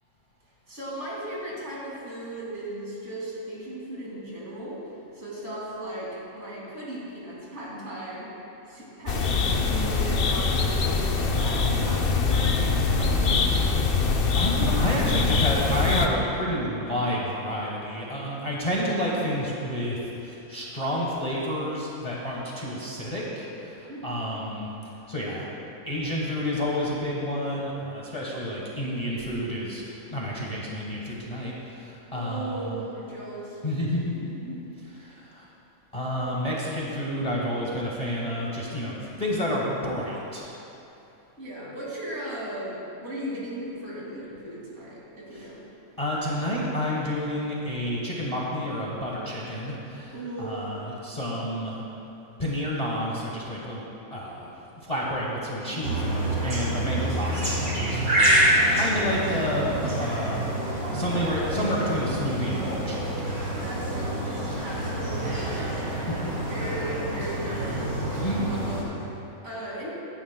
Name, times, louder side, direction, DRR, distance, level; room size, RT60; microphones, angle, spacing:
voice 1, 0.7-4.8 5.1-8.3 8.7-13.5 23.9-24.2 32.1-33.6 34.1-34.6 34.9-35.2 41.4-45.7 50.1-50.7 55.7-56.0 63.6-68.3 68.6-69.9, right 1 dB, 50° right, -6 dB, 2.6 m, -37 dB
ambience forest stepanovo province, 9.1-16.1, left 4 dB, 55° left, 0.7 m, -23 dB
voice 2, 14.3-24.7 25.1-25.5 25.9-31.5 31.8-32.7 33.6-34.3 35.0-35.5 35.9-40.5 46.0-51.8 52.4-54.5 54.9-58.0 58.7-60.5 60.9-63.3 68.2-68.6, equal, 25° left, -5 dB, 1.3 m, -30 dB
sound 1, 55.8-68.8, right 1 dB, 80° right, 2.6 m, -27 dB
15.0 x 10.5 x 2.2 m, 2.9 s
omnidirectional pair, 1.5 m